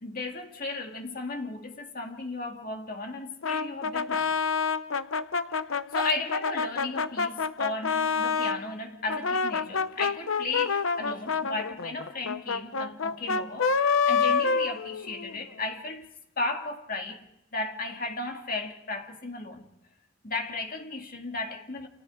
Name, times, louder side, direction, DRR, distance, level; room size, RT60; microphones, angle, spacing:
voice 1, 0.0-4.3 5.7-16.1 16.4-17.2 17.5-19.6 20.2-21.9, left 3 dB, 40° left, 2.1 m, -35 dB
Brass instrument, 3.4-8.6 9.1-15.4, left 5 dB, 70° left, 0.8 m, -27 dB
29.5 x 27.0 x 3.7 m
head